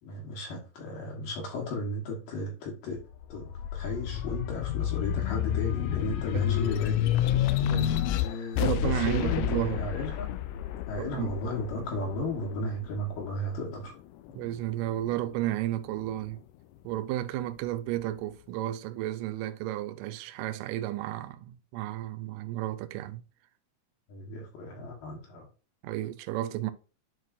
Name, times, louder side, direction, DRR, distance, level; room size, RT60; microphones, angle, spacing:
voice 1, 0.0-7.2 8.1-10.3 10.9-13.9 24.1-25.5, left 1 dB, 70° left, 2.9 m, -35 dB
sound 1, 3.0-13.8 14.3-15.4, left 12 dB, 90° left, 1.8 m, -30 dB
voice 2, 6.4-6.8 7.7-7.9 8.6-9.8 11.0-11.3 14.3-16.4 16.8-23.2 25.8-26.7, right 14 dB, 80° right, 2.0 m, -32 dB
11.0 x 4.5 x 2.6 m
omnidirectional pair, 4.3 m